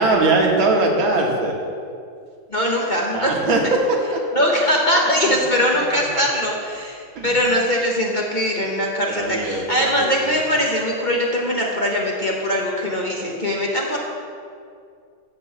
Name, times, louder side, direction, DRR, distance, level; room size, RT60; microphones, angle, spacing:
voice 1, 0.0-1.6 3.1-4.2 4.9-5.3 5.7-6.2 7.2-7.4 9.1-10.2, right 2 dB, 85° right, 0 dB, 2.3 m, -21 dB
voice 2, 2.5-3.7 4.3-14.0, equal, 30° left, -3 dB, 1.1 m, -21 dB
14.0 x 4.6 x 7.5 m, 2.3 s
omnidirectional pair, 2.1 m